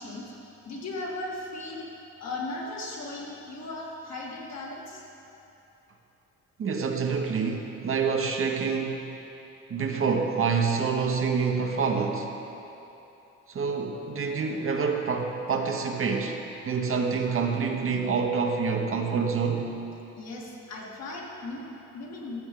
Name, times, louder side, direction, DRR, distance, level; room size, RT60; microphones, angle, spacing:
voice 1, 0.0-1.9 2.2-5.0 20.2-22.4, left 2 dB, 60° left, -2 dB, 1.9 m, -37 dB
voice 2, 6.6-9.1 9.7-12.3 13.5-16.4 16.6-19.7, right 5 dB, 45° right, 2 dB, 0.9 m, -27 dB
15.0 x 6.9 x 3.7 m, 3.0 s
cardioid pair, 90°, 30 cm